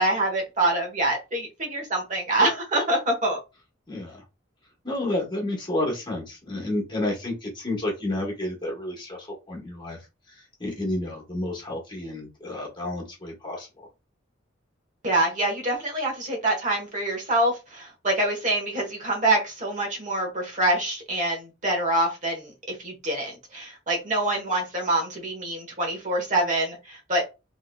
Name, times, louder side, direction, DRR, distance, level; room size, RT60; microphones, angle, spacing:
voice 1, 0.0-3.4 15.0-27.2, right 1 dB, 40° right, 1 dB, 1.3 m, -25 dB
voice 2, 3.9-4.2 4.8-10.0 10.6-13.9, left 1 dB, 25° left, -1 dB, 1.3 m, -30 dB
3.7 x 3.1 x 2.3 m, 0.26 s
head